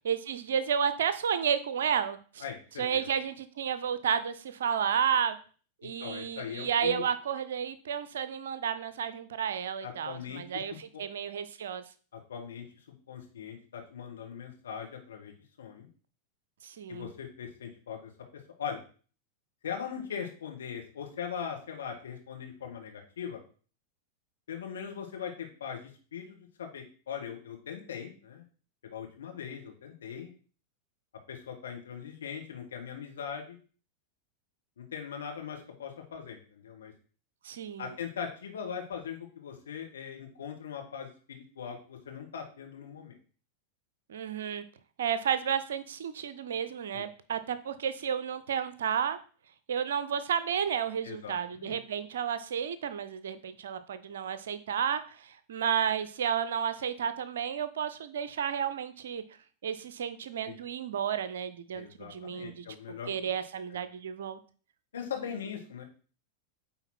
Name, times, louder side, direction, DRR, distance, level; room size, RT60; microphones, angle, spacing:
voice 1, 0.0-2.4 2.8-5.4 5.8-11.8 16.6-17.1 37.4-38.0 44.1-44.6 45.0-49.2 49.7-59.2 59.6-62.6 63.1-64.4, right 8 dB, 60° right, 13 dB, 0.6 m, -32 dB
voice 2, 2.4-3.1 5.8-7.0 9.8-11.0 12.1-15.9 16.9-18.1 18.6-18.8 19.6-23.4 24.5-28.4 28.8-30.3 31.3-33.6 34.8-36.9 37.8-43.2 46.9-47.1 51.0-51.8 60.4-60.6 61.7-63.1 63.7-63.8 64.9-65.8, left 7 dB, 65° left, 2 dB, 1.7 m, -40 dB
8.8 x 4.0 x 4.3 m, 0.40 s
figure-of-eight pair, 90°, 0 cm